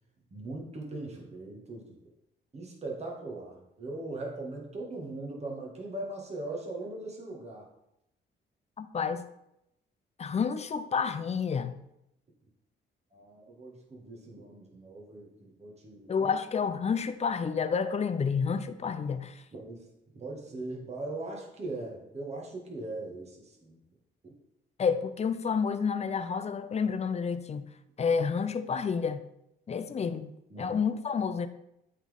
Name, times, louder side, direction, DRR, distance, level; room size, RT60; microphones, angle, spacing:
voice 1, 0.3-2.0 2.5-7.7 13.1-16.3 19.5-19.9 20.1-23.8 24.2-24.3 30.5-30.8, right 2 dB, 35° right, 1.9 m, -40 dB
voice 2, 8.8-9.2 10.2-11.7 16.1-19.4 24.8-27.7 28.0-29.2 29.7-30.3 30.6-31.5, left 6 dB, 35° left, 0.5 m, -29 dB
8.4 x 4.2 x 3.6 m
cardioid pair, 90°, 20 cm